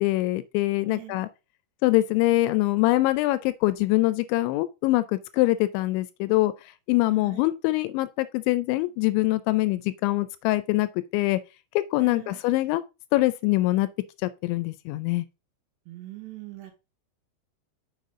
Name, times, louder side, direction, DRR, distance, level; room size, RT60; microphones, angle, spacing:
voice 1, 0.0-1.3 1.8-5.0 5.3-6.5 6.9-11.4 11.9-12.8 13.1-13.9 14.2-15.3, left 18 dB, 85° left, 2.8 m, -24 dB
voice 2, 0.9-1.3 7.1-7.5 12.0-12.4 15.9-16.7, right 17 dB, 75° right, 3.4 m, -42 dB
6.6 x 6.6 x 3.6 m
omnidirectional pair, 5.4 m